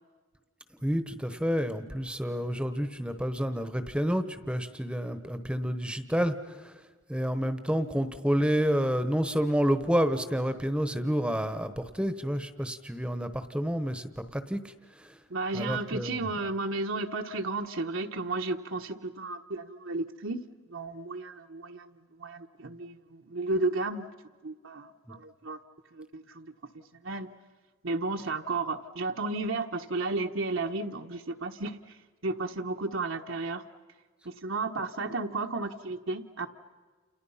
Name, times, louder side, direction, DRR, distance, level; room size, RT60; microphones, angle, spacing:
voice 1, 0.8-6.7 7.1-14.7 15.0-15.2 15.5-16.2, equal, 5° right, 10 dB, 1.0 m, -29 dB
voice 2, 15.3-20.4 20.7-21.9 22.2-24.1 24.4-25.6 25.9-26.5 27.0-27.3 27.8-32.0 32.2-33.6 34.2-36.5, right 3 dB, 70° right, 3 dB, 1.2 m, -33 dB
29.5 x 29.0 x 5.7 m, 1.4 s
head